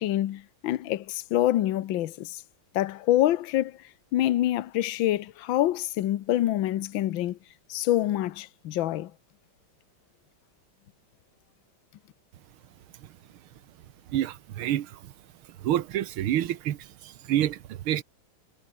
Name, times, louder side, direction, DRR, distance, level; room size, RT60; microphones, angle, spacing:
voice 1, 0.0-2.4 2.7-3.7 4.1-7.4 7.7-9.1, left 13 dB, 75° left, 1.6 m, -26 dB
voice 2, 14.1-15.1 15.6-18.0, right 12 dB, 90° right, 1.9 m, -28 dB
omnidirectional pair, 2.3 m